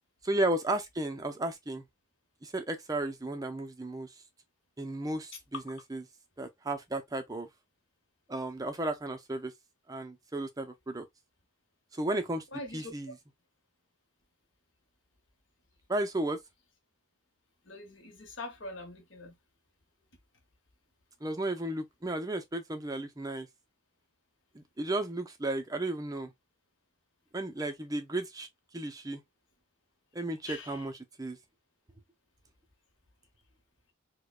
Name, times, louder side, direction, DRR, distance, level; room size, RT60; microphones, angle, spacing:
voice 1, 0.2-1.8 2.4-4.1 4.8-6.0 6.4-7.5 8.3-9.5 9.9-11.0 11.9-12.4 12.7-13.2 15.9-16.4 21.2-23.5 24.5-26.3 27.3-28.5 28.7-29.2 30.1-30.9 31.2-31.4, right 1 dB, 15° right, 0.5 m, -34 dB
voice 2, 12.5-12.9 17.6-19.4 30.4-30.8, left 3 dB, 60° left, 1.0 m, -43 dB
4.8 x 2.2 x 2.3 m
head